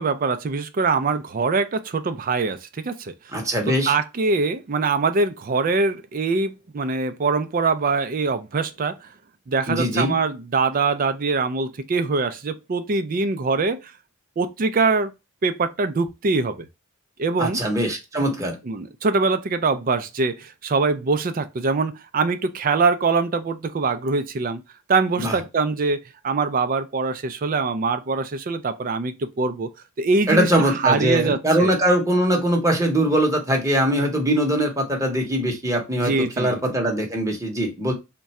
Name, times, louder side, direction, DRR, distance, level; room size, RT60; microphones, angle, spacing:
voice 1, 0.0-3.1 3.9-9.1 9.5-13.9 14.4-15.1 15.4-16.7 17.2-17.6 18.7-24.6 24.9-26.0 26.2-29.7 30.0-31.8 36.0-36.6, right 4 dB, 40° right, 0.4 m, -23 dB
voice 2, 3.3-3.9 9.7-10.2 17.4-18.6 25.2-25.4 30.3-37.9, equal, 15° right, 0.8 m, -22 dB
3.6 x 2.2 x 4.1 m
head